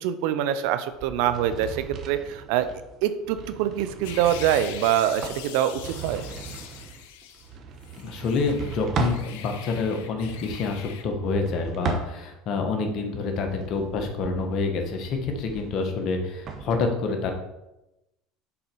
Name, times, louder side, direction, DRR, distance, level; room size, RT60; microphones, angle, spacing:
voice 1, 0.0-2.7 3.0-6.2, right 10 dB, 70° right, 11 dB, 0.6 m, -25 dB
sound 1, 0.9-9.3 10.1-12.5 13.0-16.7, right 6 dB, 50° right, 1.1 m, -37 dB
sound 2, 4.0-7.5 7.8-11.0, left 9 dB, 75° left, 0.8 m, -42 dB
voice 2, 8.0-17.3, left 4 dB, 55° left, 4 dB, 1.5 m, -27 dB
6.8 x 4.3 x 5.5 m, 0.94 s
hypercardioid pair, 90°, 0 cm